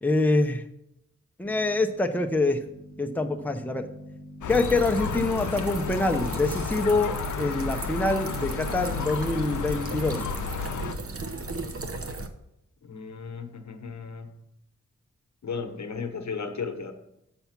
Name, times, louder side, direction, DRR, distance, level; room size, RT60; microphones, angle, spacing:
voice 1, 0.0-0.6 1.4-2.6 3.0-3.9 4.5-10.3, left 2 dB, 5° left, 5 dB, 0.6 m, -25 dB
sound 1, 1.4-12.0, equal, 80° right, 2.7 m, -47 dB
Gull seagull, 4.4-11.0, left 8 dB, 85° left, 0.4 m, -33 dB
sound 2, 4.5-12.3, right 3 dB, 50° right, 0.8 m, -36 dB
voice 2, 12.8-14.4 15.4-16.9, left 5 dB, 65° left, 7 dB, 0.9 m, -35 dB
7.0 x 5.7 x 5.8 m, 0.83 s
wide cardioid pair, 65°, 30 cm